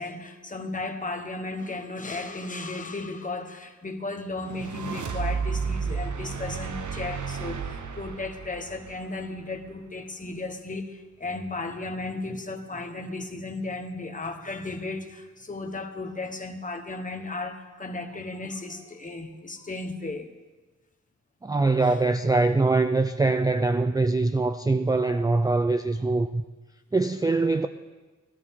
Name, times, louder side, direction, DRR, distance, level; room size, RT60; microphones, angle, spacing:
voice 1, 0.0-20.3 21.8-22.0, left 2 dB, 25° left, 1.1 m, -35 dB
sound 1, 4.3-9.7, right 5 dB, 75° right, 1.0 m, -32 dB
voice 2, 21.4-26.4 26.9-27.7, right 3 dB, 15° right, 0.3 m, -23 dB
18.5 x 13.0 x 3.6 m
wide cardioid pair, 175°, 30 cm